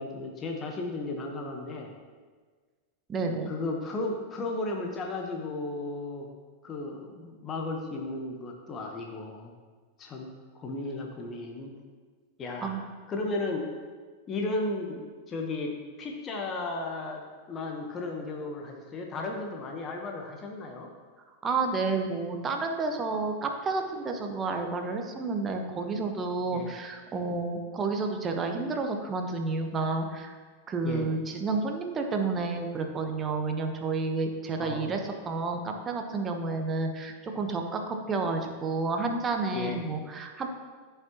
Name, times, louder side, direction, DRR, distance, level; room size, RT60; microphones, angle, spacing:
voice 1, 0.0-1.9 3.5-6.3 6.6-9.5 10.0-11.7 12.4-13.7 14.3-20.9 26.5-26.7 30.8-31.1 34.6-34.9 39.5-39.8, left 2 dB, 25° left, 1 dB, 1.1 m, -35 dB
voice 2, 3.1-3.5 12.6-12.8 21.4-30.4 30.7-40.5, right 3 dB, 20° right, 4 dB, 1.0 m, -30 dB
14.0 x 5.8 x 3.0 m, 1.5 s
figure-of-eight pair, 90°, 0 cm